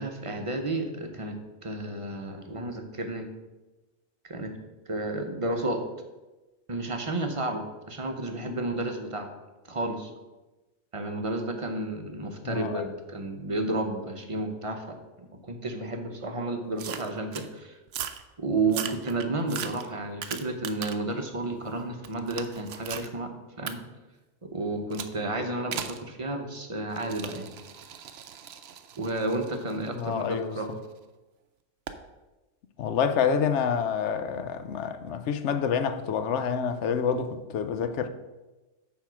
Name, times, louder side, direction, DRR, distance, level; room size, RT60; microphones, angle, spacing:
voice 1, 0.0-3.3 4.2-4.5 4.9-5.8 6.7-9.3 9.7-10.1 10.9-17.8 18.4-23.3 23.6-23.8 24.4-27.5 29.0-30.8, right 2 dB, 30° right, 0.7 m, -32 dB
voice 2, 12.4-12.8 29.9-30.6 32.8-38.1, left 7 dB, 70° left, 0.9 m, -28 dB
sound 1, 16.8-17.5 17.9-18.2 18.6-21.1 21.5-23.1 23.7-23.8 24.9-25.2 25.7-26.0 26.9-30.9 31.9-32.0, right 8 dB, 65° right, 0.8 m, -38 dB
9.0 x 3.7 x 6.0 m
omnidirectional pair, 1.3 m